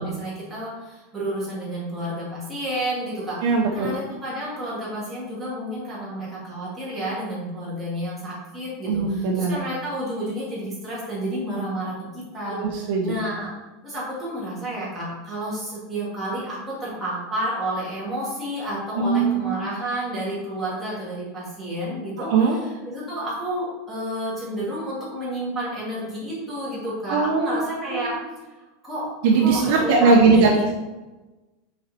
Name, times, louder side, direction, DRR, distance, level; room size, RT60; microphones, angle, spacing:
voice 1, 0.0-3.4 3.7-13.5 13.8-28.2 28.8-29.1 29.4-30.7, right 1 dB, 5° right, -9 dB, 2.2 m, -30 dB
voice 2, 3.4-4.0 8.9-9.6 12.5-13.1 19.0-19.5 22.2-22.6 27.1-28.2 29.2-30.5, right 4 dB, 50° right, 0 dB, 0.8 m, -20 dB
6.4 x 4.1 x 4.1 m, 1.1 s
supercardioid pair, 175°, 0 cm